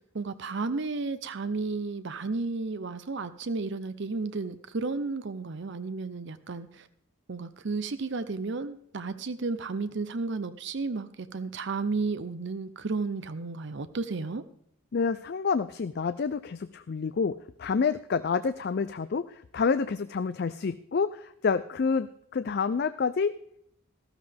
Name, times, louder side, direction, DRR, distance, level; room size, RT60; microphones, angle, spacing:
voice 1, 0.1-6.9 7.3-14.4, right 3 dB, 55° right, 0.6 m, -33 dB
voice 2, 14.9-23.3, left 5 dB, 50° left, 0.4 m, -28 dB
14.0 x 13.0 x 3.4 m
head